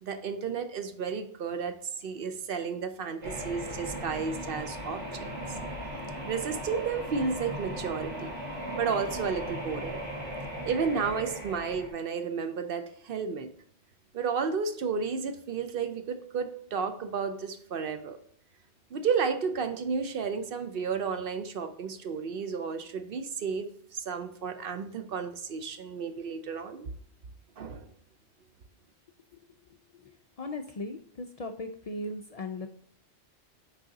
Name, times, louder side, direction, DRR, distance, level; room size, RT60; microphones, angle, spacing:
voice 1, 0.0-5.3 6.3-8.3 8.7-10.0 10.7-13.5 14.1-18.2 18.9-26.9 27.6-27.9, right 5 dB, 60° right, 8 dB, 0.8 m, -32 dB
sound 1, 3.2-11.9, right 1 dB, 90° right, 2.2 m, -37 dB
voice 2, 29.9-32.7, left 2 dB, 65° left, 5 dB, 0.3 m, -38 dB
6.2 x 4.1 x 3.9 m, 0.63 s
omnidirectional pair, 1.2 m